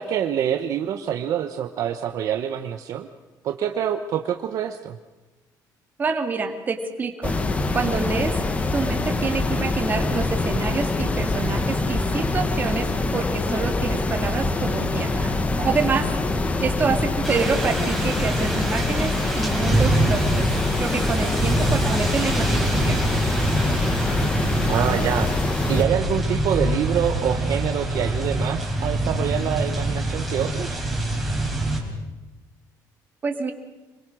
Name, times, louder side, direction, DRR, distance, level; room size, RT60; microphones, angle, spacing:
voice 1, 0.0-3.1 3.4-5.0 24.6-25.3 25.7-30.8, right 9 dB, 55° right, 6 dB, 1.1 m, -26 dB
voice 2, 6.0-7.3 7.7-8.3 8.7-16.1 16.6-20.4 20.8-23.0 33.2-33.5, right 5 dB, 25° right, 4 dB, 2.2 m, -27 dB
sound 1, 7.2-25.8, left 2 dB, 20° left, 1.2 m, -24 dB
sound 2, 17.2-31.8, right 1 dB, ahead, 4.2 m, -25 dB
26.5 x 22.0 x 6.3 m, 1.1 s
cardioid pair, 165°, 7 cm